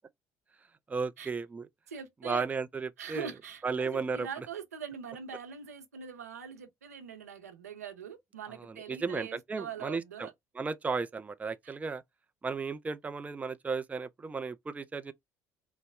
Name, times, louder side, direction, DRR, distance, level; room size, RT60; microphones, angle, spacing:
voice 1, 0.9-1.7 2.2-3.3 3.6-4.3 8.6-10.3 10.6-12.0 12.4-15.1, right 4 dB, 20° right, 0.4 m, -34 dB
voice 2, 1.9-2.5 3.0-10.3 11.6-11.8, right 7 dB, 90° right, 0.6 m, -43 dB
4.0 x 2.1 x 3.4 m
hypercardioid pair, 60°, 8 cm